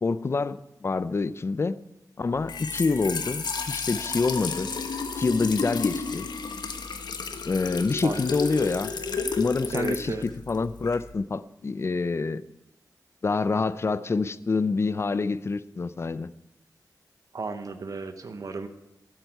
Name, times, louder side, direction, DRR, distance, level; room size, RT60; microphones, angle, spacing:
voice 1, 0.0-1.8 2.2-4.7 5.2-6.3 7.4-8.9 9.4-10.2 10.5-12.4 13.2-16.3, left 4 dB, 40° left, 16 dB, 0.5 m, -26 dB
Trickle dribble / Fill (with liquid), 2.3-11.1, left 4 dB, 85° left, 1.2 m, -32 dB
voice 2, 9.7-10.2 17.3-18.7, right 4 dB, 55° right, 9 dB, 0.8 m, -33 dB
11.5 x 8.0 x 9.2 m, 0.94 s
wide cardioid pair, 140°, 7 cm